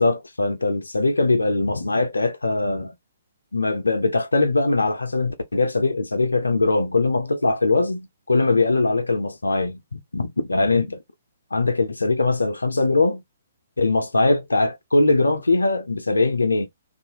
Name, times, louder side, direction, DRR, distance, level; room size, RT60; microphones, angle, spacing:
voice 1, 0.0-2.9 3.5-11.0 11.5-13.2 13.8-16.7, left 3 dB, 80° left, 0.5 m, -21 dB
2.6 x 2.4 x 2.8 m
figure-of-eight pair, 125°, 0 cm